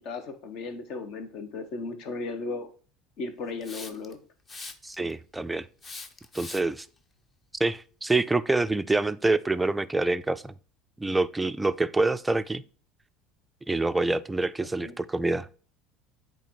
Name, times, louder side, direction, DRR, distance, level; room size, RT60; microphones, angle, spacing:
voice 1, 0.0-2.7 3.2-4.2 14.6-14.9, left 3 dB, 60° left, 1.3 m, -36 dB
Hiss, 3.6-4.1 4.5-5.1 5.8-6.8, left 3 dB, 25° left, 0.8 m, -41 dB
voice 2, 4.8-5.7 6.3-6.9 7.6-10.5 11.0-12.6 13.7-15.5, right 2 dB, 10° right, 0.4 m, -26 dB
8.5 x 3.3 x 4.6 m
supercardioid pair, 110°, 0 cm